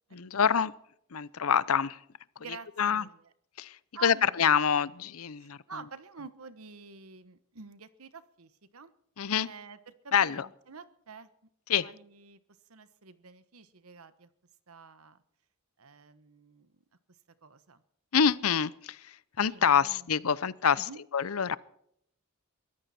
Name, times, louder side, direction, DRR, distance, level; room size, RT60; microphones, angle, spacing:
voice 1, 0.1-0.7 1.1-2.0 2.8-3.0 3.6-3.8 4.0-5.6 9.2-9.5 10.1-10.5 11.7-11.9 18.1-21.6, left 7 dB, 90° left, 19 dB, 0.7 m, -26 dB
voice 2, 2.4-3.3 3.9-4.8 5.4-8.9 9.4-11.3 11.8-12.4 12.7-14.3 14.7-15.2 15.8-16.8 17.4-17.8 19.4-20.4 20.8-21.0, right 5 dB, 85° right, 13 dB, 1.3 m, -48 dB
22.5 x 14.5 x 4.3 m, 0.69 s
head